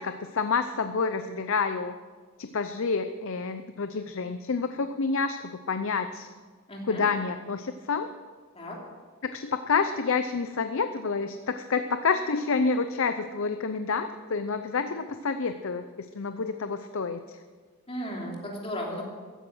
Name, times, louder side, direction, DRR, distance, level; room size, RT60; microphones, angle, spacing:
voice 1, 0.0-1.9 2.4-6.3 6.9-8.1 9.2-15.9 16.1-17.4, left 4 dB, 60° left, 9 dB, 0.6 m, -28 dB
voice 2, 6.7-7.0 8.5-8.8 17.9-19.0, equal, 25° left, -2 dB, 3.1 m, -35 dB
15.0 x 11.0 x 6.2 m, 1.5 s
head